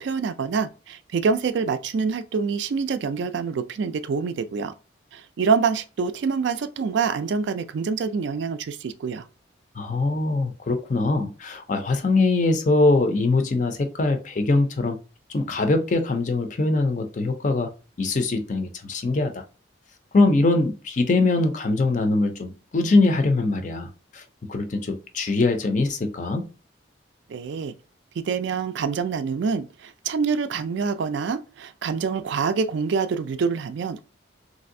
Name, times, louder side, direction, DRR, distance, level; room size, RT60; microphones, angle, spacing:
voice 1, 0.0-4.7 5.1-9.2 27.3-27.7 28.2-34.1, right 5 dB, 65° right, 0.3 m, -26 dB
voice 2, 9.8-15.0 15.3-17.7 18.0-19.4 20.1-24.2 24.5-26.4, left 2 dB, 40° left, 0.4 m, -22 dB
3.2 x 2.6 x 2.6 m
head